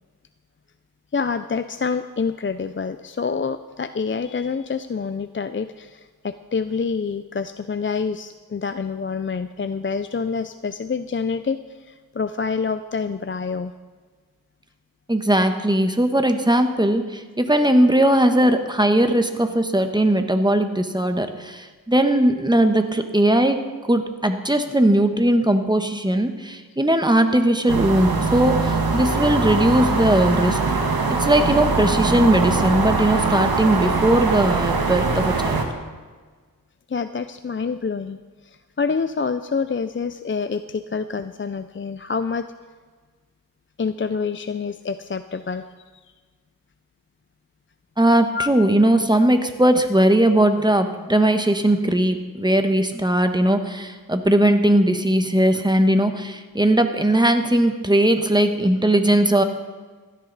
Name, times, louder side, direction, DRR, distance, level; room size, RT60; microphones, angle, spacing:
voice 1, 1.1-13.7 36.9-42.5 43.8-45.7 45.9-46.1 48.3-48.5, left 5 dB, 35° left, 11 dB, 0.5 m, -27 dB
voice 2, 15.1-23.6 23.9-30.6 31.2-35.6 48.0-59.4, right 1 dB, 10° right, 7 dB, 1.2 m, -19 dB
sound 1, 27.7-35.7, right 3 dB, 70° right, 1.6 m, -22 dB
16.5 x 12.0 x 4.1 m, 1.5 s
wide cardioid pair, 60°, 37 cm